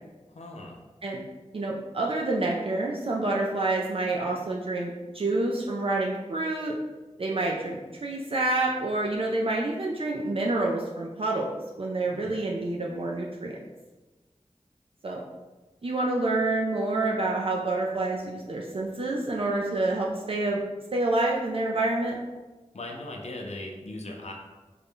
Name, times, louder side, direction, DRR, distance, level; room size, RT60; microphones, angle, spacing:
voice 1, 0.3-0.8 12.1-12.5 22.7-24.3, left 2 dB, 65° left, 0 dB, 0.6 m, -39 dB
voice 2, 1.5-6.7 7.2-11.5 11.8-13.6 15.0-15.2 15.8-20.6 20.9-22.2, right 2 dB, 50° right, -2 dB, 0.4 m, -28 dB
3.8 x 2.2 x 3.5 m, 1.2 s
wide cardioid pair, 60°, 12 cm